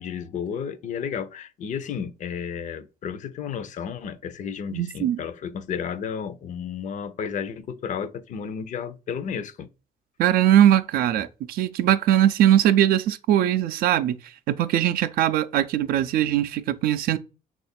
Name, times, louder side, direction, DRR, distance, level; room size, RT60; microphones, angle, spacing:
voice 1, 0.0-9.7, left 7 dB, 50° left, 0.5 m, -32 dB
voice 2, 4.7-5.2 10.2-14.2 14.5-17.2, right 11 dB, 70° right, 0.4 m, -20 dB
3.2 x 2.4 x 4.2 m
cardioid pair, 105°, 16 cm